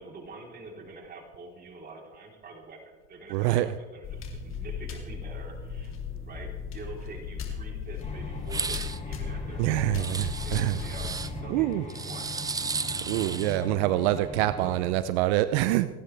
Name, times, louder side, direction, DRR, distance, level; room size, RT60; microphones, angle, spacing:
voice 1, 0.0-5.9 6.3-10.1 10.4-12.3 13.0-13.4 14.6-14.7, right 3 dB, 30° right, 0 dB, 3.9 m, -46 dB
voice 2, 3.3-3.7 9.6-10.8 11.5-11.8 13.1-15.9, right 14 dB, 80° right, 13 dB, 0.7 m, -25 dB
sound 1, 4.0-11.4, left 6 dB, 40° left, 3.1 m, -37 dB
sound 2, 8.0-14.9, left 1 dB, 25° left, 6.1 m, -40 dB
sound 3, 8.4-9.0 10.0-11.3 11.9-13.6, right 4 dB, 10° right, 0.5 m, -34 dB
29.0 x 9.9 x 3.4 m, 1.4 s
supercardioid pair, 120°, 33 cm